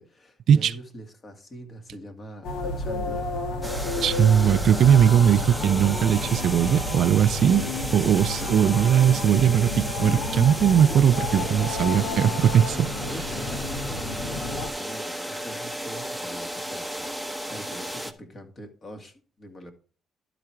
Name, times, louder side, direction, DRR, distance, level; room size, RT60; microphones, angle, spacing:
voice 1, 0.0-3.2 13.0-19.7, equal, 40° left, 2.2 m, -43 dB
sound 1, 2.4-14.7, left 2 dB, 90° left, 1.4 m, -31 dB
sound 2, 3.6-18.1, equal, ahead, 0.9 m, -34 dB
voice 2, 4.0-7.6 7.9-12.9, right 9 dB, 70° right, 0.4 m, -19 dB
11.5 x 4.9 x 4.5 m
cardioid pair, 90°, 0 cm